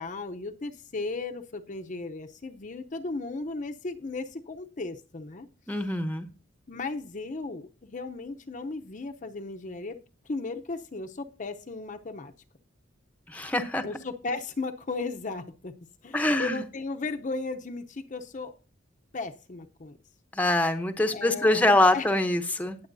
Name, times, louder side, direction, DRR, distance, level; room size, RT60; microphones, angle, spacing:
voice 1, 0.0-5.5 6.7-10.0 10.3-12.3 13.8-15.7 16.0-18.5 19.1-20.0 21.1-22.1, left 3 dB, 40° left, 6 dB, 0.7 m, -35 dB
voice 2, 5.7-6.3 13.3-13.8 16.1-16.6 20.3-22.8, left 1 dB, 10° left, 6 dB, 0.8 m, -24 dB
18.5 x 7.0 x 2.6 m, 0.34 s
head